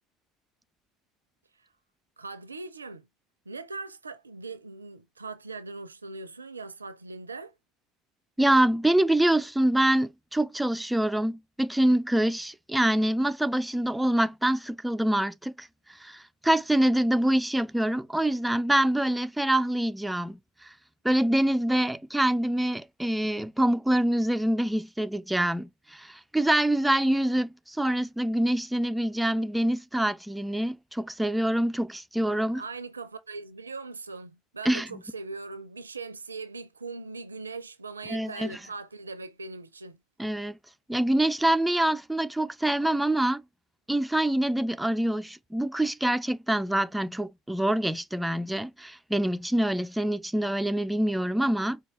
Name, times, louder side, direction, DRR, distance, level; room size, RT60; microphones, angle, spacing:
voice 1, 2.2-3.1 3.5-7.5 32.6-40.0, right 3 dB, 90° right, 0.5 m, -40 dB
voice 2, 8.4-20.7 21.0-32.6 34.6-34.9 38.1-38.6 40.2-40.6 40.9-43.4 43.9-51.8, right 1 dB, 5° right, 0.4 m, -25 dB
4.6 x 2.8 x 3.2 m
figure-of-eight pair, 70°, 0 cm